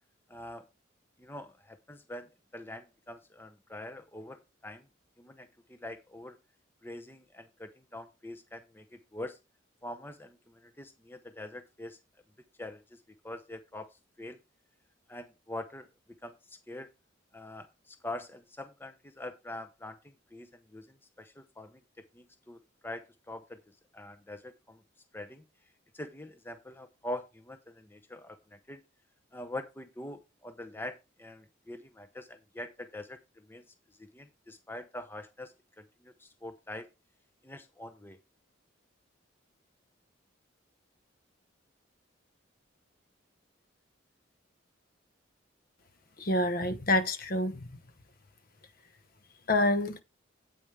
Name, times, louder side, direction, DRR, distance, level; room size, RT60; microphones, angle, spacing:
voice 1, 0.3-0.6 1.2-4.9 5.2-6.4 6.8-9.4 9.8-12.0 12.6-14.4 15.1-15.9 16.2-16.9 17.3-21.8 22.1-23.6 23.9-24.8 25.1-25.4 25.9-28.8 29.3-33.2 33.5-33.6 33.9-36.9 37.4-38.2, left 1 dB, 10° left, 0.6 m, -44 dB
voice 2, 46.2-47.7 49.5-50.0, left 1 dB, 45° left, 1.0 m, -27 dB
8.9 x 8.5 x 3.3 m
head